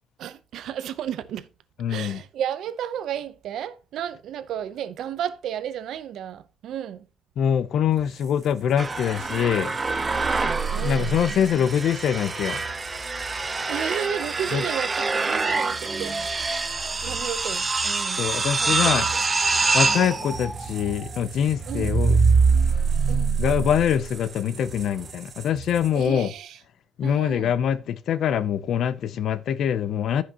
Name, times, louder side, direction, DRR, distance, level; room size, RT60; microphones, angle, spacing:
voice 1, 0.2-1.5 1.9-7.1 10.4-11.7 13.7-16.4 17.0-18.3 18.6-19.2 19.8-20.1 21.7-21.9 23.1-23.4 25.9-26.6 27.0-27.5, right 9 dB, 60° right, 0.6 m, -33 dB
voice 2, 1.8-2.2 7.4-9.8 10.7-12.6 14.5-14.6 18.2-19.1 19.7-22.2 23.4-26.3 27.0-30.2, left 9 dB, 50° left, 0.5 m, -24 dB
sound 1, 7.9-26.3, right 5 dB, 35° right, 1.1 m, -42 dB
sound 2, 8.8-24.2, right 4 dB, 15° right, 0.6 m, -25 dB
14.5 x 5.7 x 2.8 m
cardioid pair, 175°, 0 cm